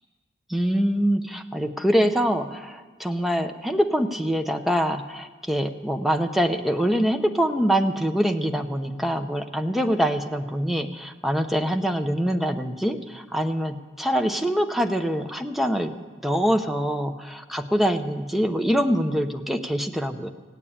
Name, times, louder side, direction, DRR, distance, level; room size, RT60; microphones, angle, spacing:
voice 1, 0.5-15.9 16.2-20.3, equal, ahead, 6 dB, 0.7 m, -24 dB
16.5 x 9.0 x 8.6 m, 1.4 s
head